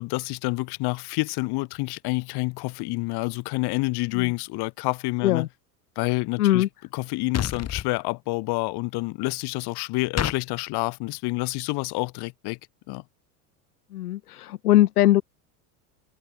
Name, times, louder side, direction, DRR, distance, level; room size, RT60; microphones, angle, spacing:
voice 1, 0.0-5.5 6.0-6.6 6.9-12.6 12.9-13.0, left 24 dB, 60° left, 5.9 m, -28 dB
voice 2, 6.4-6.7 13.9-15.2, left 14 dB, 90° left, 2.1 m, -21 dB
sound 1, 7.3-7.9 10.2-10.4, left 9 dB, 35° left, 3.6 m, -27 dB
supercardioid pair, 100°, 44 cm